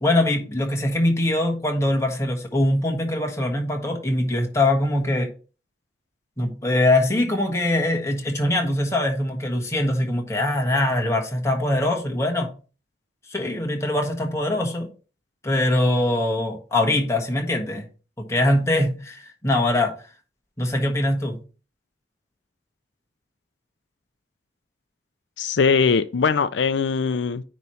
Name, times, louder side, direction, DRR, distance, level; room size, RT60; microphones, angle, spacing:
voice 1, 0.0-5.3 6.4-12.5 13.3-14.9 15.4-17.8 18.2-19.9 20.6-21.4, left 1 dB, 15° left, 1.5 m, -22 dB
voice 2, 25.4-27.4, left 5 dB, 85° left, 0.5 m, -21 dB
9.4 x 3.2 x 5.6 m
head